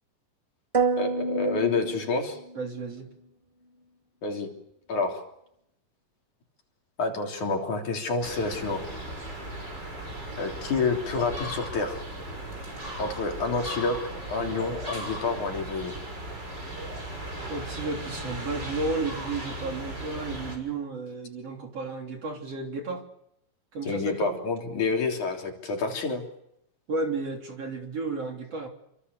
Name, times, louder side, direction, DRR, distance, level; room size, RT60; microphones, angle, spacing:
sound 1, 0.7-2.7, right 4 dB, 15° right, 1.5 m, -28 dB
voice 1, 1.0-2.4 4.2-4.5 4.9-5.2 7.0-8.8 10.4-12.0 13.0-14.0 14.3-15.9 23.8-26.2, left 3 dB, 60° left, 2 dB, 4.8 m, -28 dB
voice 2, 2.6-3.1 17.5-23.0 23.7-24.3 26.9-28.7, right 3 dB, 45° right, 2 dB, 4.3 m, -33 dB
sound 2, 8.2-20.6, right 1 dB, 30° right, 6.7 m, -37 dB
28.5 x 25.0 x 7.0 m, 0.79 s
omnidirectional pair, 4.0 m